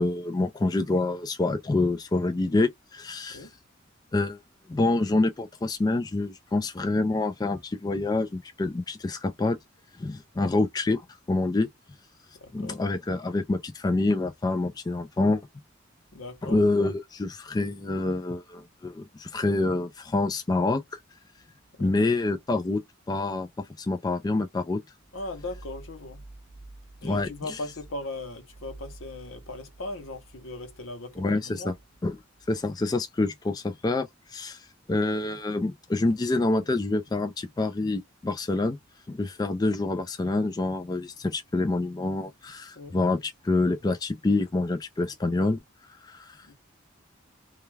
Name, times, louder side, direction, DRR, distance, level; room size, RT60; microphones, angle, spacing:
voice 1, 0.0-3.5 4.1-4.4 4.7-9.6 10.0-11.7 12.5-15.4 16.4-21.0 21.8-22.8 23.1-23.5 23.8-24.8 27.0-27.6 31.2-31.7 32.0-32.2 32.5-38.8 39.1-45.6 46.0-46.5, left 2 dB, 20° left, 0.3 m, -27 dB
voice 2, 12.4-12.8 16.1-16.6 21.8-21.9 25.1-26.2 27.0-31.7 42.7-43.0 46.4-46.5, left 2 dB, 80° left, 0.8 m, -38 dB
2.3 x 2.2 x 3.1 m
head